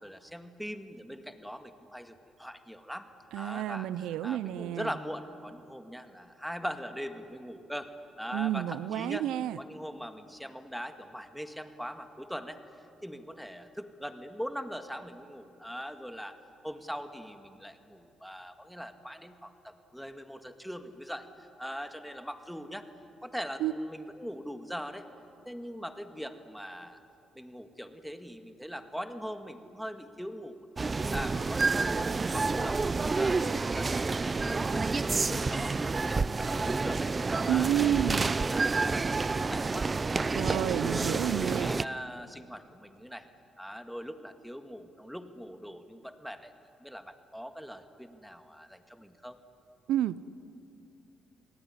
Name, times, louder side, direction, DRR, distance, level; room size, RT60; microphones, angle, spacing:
voice 1, 0.0-3.1 3.4-7.9 8.2-9.3 9.6-12.6 13.0-16.4 16.6-22.8 23.2-25.0 25.5-27.0 27.4-34.0 34.2-37.1 37.5-38.0 38.2-39.9 40.3-40.8 41.3-43.3 43.6-46.5 46.8-49.4, equal, ahead, 7 dB, 1.9 m, -41 dB
voice 2, 3.3-4.9 8.3-9.6 23.6-23.7 37.5-38.3 40.3-41.7 49.9-50.2, right 12 dB, 90° right, 17 dB, 0.6 m, -30 dB
sound 1, 30.8-41.9, right 3 dB, 30° right, 0.5 m, -29 dB
27.5 x 19.5 x 9.9 m, 2.7 s
cardioid pair, 90°, 0 cm